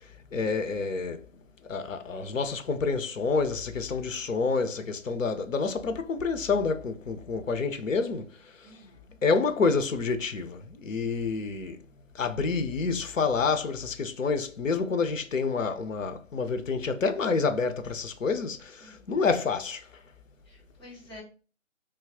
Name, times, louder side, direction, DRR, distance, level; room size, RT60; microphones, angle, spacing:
voice 1, 0.3-1.2 1.7-8.3 9.2-11.8 12.1-19.8, left 4 dB, 80° left, 0.7 m, -28 dB
voice 2, 8.6-9.2 18.8-19.1 20.5-21.2, left 1 dB, 20° left, 1.2 m, -50 dB
3.3 x 2.3 x 3.4 m
figure-of-eight pair, 155°, 38 cm